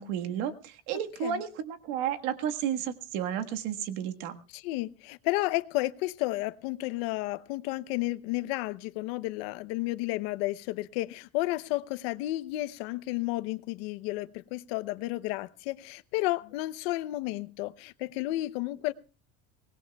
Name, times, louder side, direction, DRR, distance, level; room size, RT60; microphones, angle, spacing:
voice 1, 0.0-4.3, right 9 dB, 70° right, 7 dB, 1.6 m, -32 dB
voice 2, 4.5-18.9, left 18 dB, 85° left, 15 dB, 0.8 m, -32 dB
23.5 x 20.0 x 2.3 m, 0.35 s
cardioid pair, 175°, 29 cm